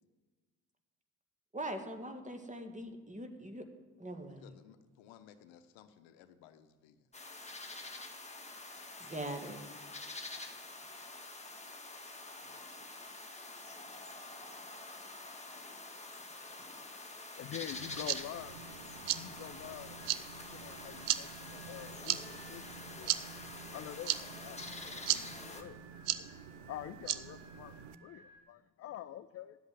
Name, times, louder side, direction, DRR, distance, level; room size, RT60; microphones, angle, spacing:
voice 1, 1.5-3.6 4.0-4.5 9.1-9.6, right 1 dB, 15° right, 5 dB, 1.9 m, -41 dB
voice 2, 4.3-7.1 12.4-12.6, left 9 dB, 65° left, 11 dB, 0.9 m, -59 dB
sound 1, 7.1-25.6, left 2 dB, 15° left, 1.7 m, -47 dB
voice 3, 17.4-18.7 19.1-20.0 20.4-23.1 23.7-25.8 26.7-29.6, left 12 dB, 35° left, 15 dB, 0.4 m, -47 dB
sound 2, 17.7-28.0, right 13 dB, 55° right, 0.7 m, -39 dB
sound 3, 19.9-28.4, right 1 dB, 90° right, 3.2 m, -60 dB
9.8 x 8.1 x 9.5 m, 1.3 s
figure-of-eight pair, 45°, 48 cm